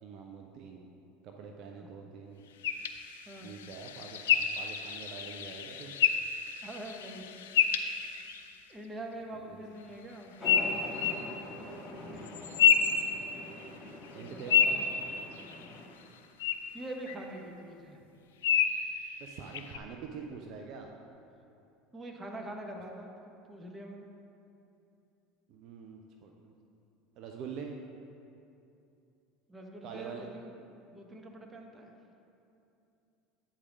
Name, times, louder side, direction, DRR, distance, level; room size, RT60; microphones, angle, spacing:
voice 1, 0.0-0.9 1.2-2.4 3.4-5.9 9.3-9.6 11.9-12.3 14.1-14.8 19.2-20.9 25.5-26.6 27.2-27.7 29.8-30.3, right 6 dB, 55° right, 2 dB, 0.6 m, -45 dB
sound 1, 2.6-8.5 10.4-11.2 12.2-13.7 14.0-15.8 16.4-16.6 17.1-17.2 18.4-18.8 19.5-19.8, left 7 dB, 75° left, 0.4 m, -29 dB
voice 2, 6.6-7.3 8.7-10.3 14.3-14.9 16.7-18.0 21.9-24.1 29.5-30.5 30.9-31.9, right 1 dB, 20° right, 2 dB, 1.1 m, -44 dB
sound 2, 10.4-15.9, left 1 dB, 20° left, 1.7 m, -44 dB
8.6 x 5.0 x 5.2 m, 2.7 s
hypercardioid pair, 70°, 0 cm